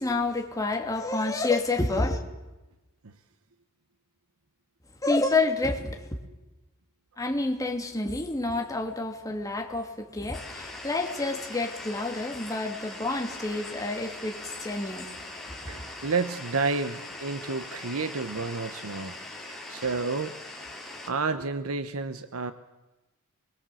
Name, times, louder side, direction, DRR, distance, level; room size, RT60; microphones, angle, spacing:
voice 1, 0.0-2.2 5.0-6.2 7.2-15.1 15.5-15.6, left 2 dB, 15° left, 2 dB, 2.7 m, -29 dB
sound 1, 10.3-21.1, left 2 dB, ahead, 4.1 m, -41 dB
voice 2, 15.7-19.2 19.7-20.4 21.1-22.5, right 4 dB, 75° right, 11 dB, 1.0 m, -30 dB
25.0 x 22.0 x 7.9 m, 1.1 s
head